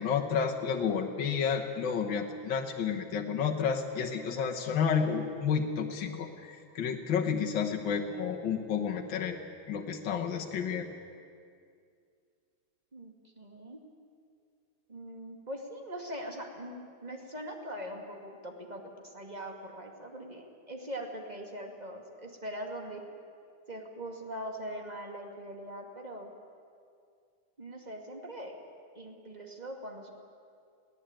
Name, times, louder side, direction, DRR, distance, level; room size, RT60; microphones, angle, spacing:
voice 1, 0.0-10.9, left 6 dB, 75° left, 1 dB, 2.0 m, -31 dB
voice 2, 12.9-13.8 14.9-23.0 23.7-26.3 27.6-28.5 28.9-30.1, equal, 20° right, 2 dB, 2.4 m, -42 dB
21.5 x 17.0 x 8.9 m, 2.3 s
omnidirectional pair, 2.1 m